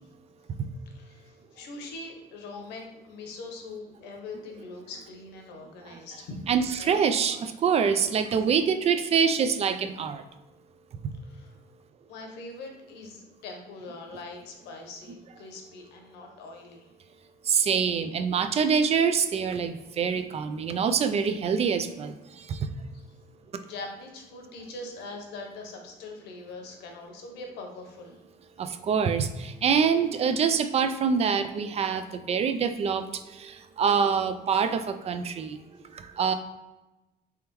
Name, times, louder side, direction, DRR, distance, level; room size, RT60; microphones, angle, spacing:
voice 1, 0.9-6.4 6.8-7.1 11.2-11.5 12.1-16.9 22.9-23.0 23.6-28.2 30.3-30.5, left 3 dB, 90° left, 2 dB, 0.9 m, -42 dB
voice 2, 6.5-10.2 17.5-22.1 22.5-22.7 28.6-33.0 33.4-35.6 36.0-36.3, right 6 dB, 40° right, 9 dB, 0.3 m, -25 dB
3.4 x 3.4 x 3.0 m, 1.0 s
cardioid pair, 110°, 17 cm